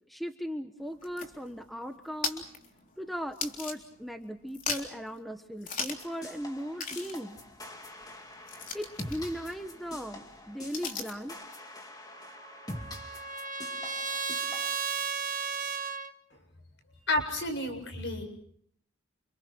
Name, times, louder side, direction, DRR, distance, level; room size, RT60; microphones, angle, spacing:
voice 1, 0.1-2.4 3.0-7.4 8.7-11.4 13.8-14.0, equal, ahead, 6 dB, 1.3 m, -38 dB
sound 1, 0.8-4.2 4.5-5.1 5.6-6.1 6.4-6.5 6.8-11.3, left 5 dB, 40° left, 3.7 m, -39 dB
sound 2, 5.9-14.8, left 1 dB, 20° left, 2.7 m, -45 dB
Trumpet, 12.2-16.1, right 5 dB, 40° right, 1.5 m, -34 dB
voice 2, 17.1-18.2, left 1 dB, 65° left, 5 dB, 7.4 m, -30 dB
29.5 x 29.5 x 4.6 m, 0.67 s
head